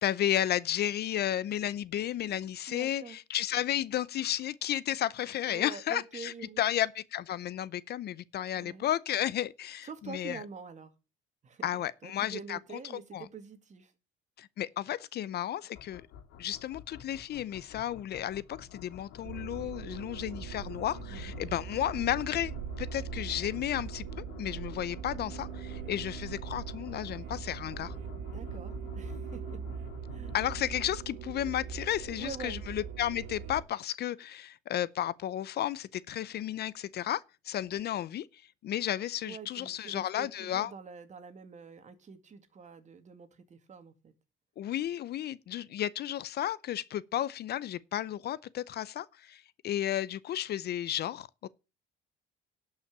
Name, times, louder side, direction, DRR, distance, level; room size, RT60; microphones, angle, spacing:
voice 1, 0.0-10.4 11.6-12.6 13.1-13.3 14.4-16.0 16.4-27.9 30.3-40.7 44.6-51.5, left 12 dB, 55° left, 0.6 m, -33 dB
voice 2, 2.7-3.2 5.5-6.7 8.5-8.8 9.8-10.9 11.4-11.7 12.0-13.9 21.1-21.4 28.3-29.6 30.1-30.4 32.1-32.6 39.2-44.1, right 5 dB, 35° right, 2.2 m, -46 dB
sound 1, 15.7-30.5, left 8 dB, 90° left, 2.6 m, -50 dB
sound 2, 19.2-33.6, right 7 dB, 85° right, 2.2 m, -41 dB
11.5 x 5.7 x 8.5 m
cardioid pair, 110°, 21 cm